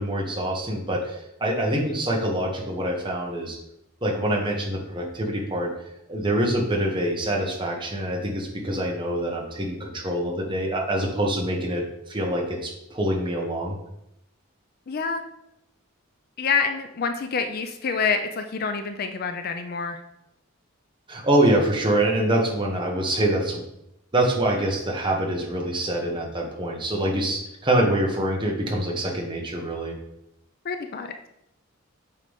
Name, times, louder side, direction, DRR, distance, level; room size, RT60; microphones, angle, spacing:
voice 1, 0.0-3.6 4.0-5.7 6.1-13.8 21.1-23.6 24.1-29.9, right 1 dB, 20° right, 0 dB, 1.2 m, -25 dB
voice 2, 14.9-15.2 16.4-20.0 30.7-31.1, left 5 dB, 45° left, 7 dB, 0.4 m, -27 dB
8.3 x 3.9 x 3.5 m, 0.83 s
head